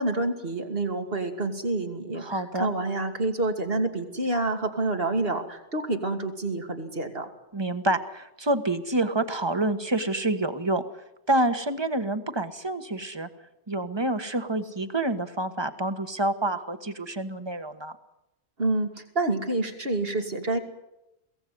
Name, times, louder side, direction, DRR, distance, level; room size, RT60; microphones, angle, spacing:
voice 1, 0.0-7.3 18.6-20.6, right 2 dB, 65° right, 5 dB, 2.9 m, -28 dB
voice 2, 2.2-2.7 7.5-10.8 11.3-13.3 13.7-17.9, right 2 dB, 25° right, 10 dB, 1.5 m, -27 dB
23.0 x 17.5 x 9.4 m, 0.90 s
omnidirectional pair, 1.1 m